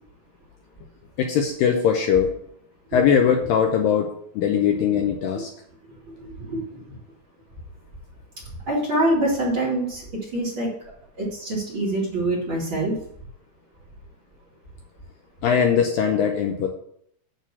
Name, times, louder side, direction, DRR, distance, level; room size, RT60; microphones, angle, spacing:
voice 1, 1.2-2.3 2.9-5.5 15.4-16.7, left 7 dB, 75° left, 3 dB, 2.3 m, -20 dB
voice 2, 5.9-6.8 8.7-10.0 10.3-10.7 11.2-12.9, right 1 dB, 35° right, -4 dB, 2.7 m, -25 dB
9.2 x 3.7 x 7.1 m, 0.67 s
omnidirectional pair, 4.6 m